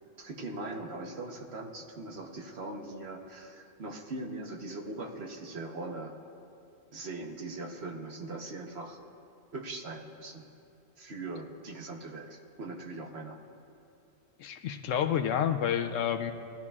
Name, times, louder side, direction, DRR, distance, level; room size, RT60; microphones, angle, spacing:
voice 1, 0.2-6.1 6.9-9.0 9.5-10.5 11.0-13.4, right 2 dB, 55° right, 2 dB, 1.3 m, -40 dB
voice 2, 14.4-16.3, left 9 dB, 80° left, 7 dB, 1.0 m, -29 dB
20.0 x 13.5 x 2.4 m, 2.8 s
omnidirectional pair, 1.3 m